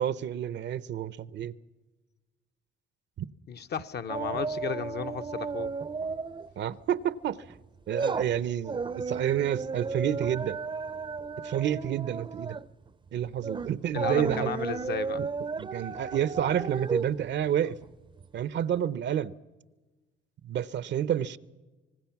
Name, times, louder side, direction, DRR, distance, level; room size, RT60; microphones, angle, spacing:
voice 1, 0.0-1.5 3.2-3.3 6.6-7.4 7.9-10.6 11.4-12.6 13.1-14.5 15.2-15.3 15.6-17.8 18.3-19.3 20.4-21.4, right 10 dB, 65° right, 0.8 m, -29 dB
voice 2, 3.5-5.7 13.9-15.2, left 7 dB, 55° left, 0.9 m, -34 dB
sound 1, 4.1-6.5 6.8-7.0 7.4-18.4 18.7-18.8, right 4 dB, 25° right, 0.6 m, -34 dB
26.0 x 19.0 x 5.9 m
cardioid pair, 90°, 20 cm